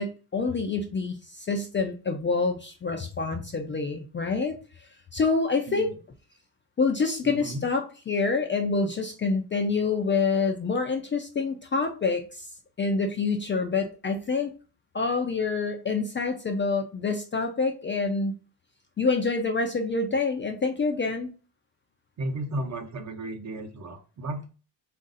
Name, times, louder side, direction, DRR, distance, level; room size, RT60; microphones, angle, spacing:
voice 1, 0.0-4.5 5.1-5.9 6.8-12.5 12.8-14.5 14.9-18.4 19.0-21.3, left 4 dB, 30° left, 3 dB, 0.4 m, -27 dB
voice 2, 5.7-6.0 7.2-7.6 22.2-24.5, right 1 dB, 40° right, 5 dB, 0.8 m, -34 dB
3.7 x 2.6 x 3.9 m, 0.35 s
cardioid pair, 135°, 44 cm